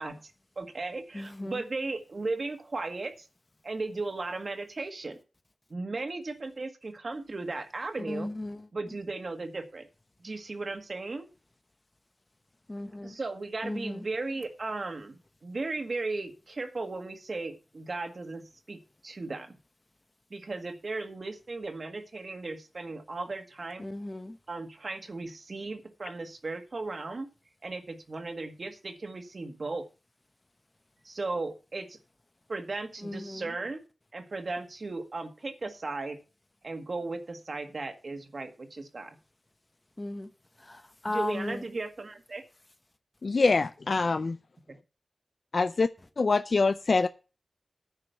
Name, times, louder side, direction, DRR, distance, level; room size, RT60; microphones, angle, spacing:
voice 1, 0.0-3.3 3.6-5.2 5.7-8.3 8.7-9.9 10.2-11.3 13.0-19.6 20.3-23.9 24.5-27.3 27.6-29.8 31.0-32.0 32.5-33.8 34.1-36.2 36.6-39.2 41.1-42.4 44.7-44.8, right 3 dB, 50° right, 1.8 m, -36 dB
voice 2, 1.1-1.6 8.1-8.6 12.7-13.1 13.6-14.0 23.8-24.3 33.0-33.4 40.0-40.3 40.7-41.6, left 2 dB, 25° left, 1.0 m, -35 dB
voice 3, 43.2-44.4 45.5-45.9 46.2-47.1, left 3 dB, 55° left, 0.4 m, -24 dB
10.0 x 5.3 x 8.0 m
wide cardioid pair, 110°, 0 cm